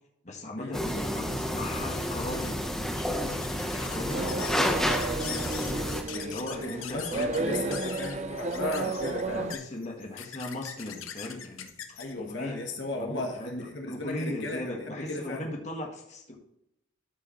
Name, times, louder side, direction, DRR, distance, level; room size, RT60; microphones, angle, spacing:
voice 1, 0.2-3.4 3.8-5.0 5.6-7.8 8.8-8.9 9.3-11.7 12.1-12.6 12.9-16.4, left 1 dB, 35° left, 1 dB, 1.6 m, -38 dB
sound 1, 0.7-6.0, equal, 5° left, 0.9 m, -30 dB
sound 2, 1.9-13.7, left 8 dB, 90° left, 1.0 m, -44 dB
sound 3, 4.1-9.5, right 3 dB, 35° right, 0.4 m, -33 dB
voice 2, 6.5-9.5 12.0-15.5, left 2 dB, 65° left, 1 dB, 1.3 m, -36 dB
13.0 x 4.9 x 3.1 m, 0.81 s
head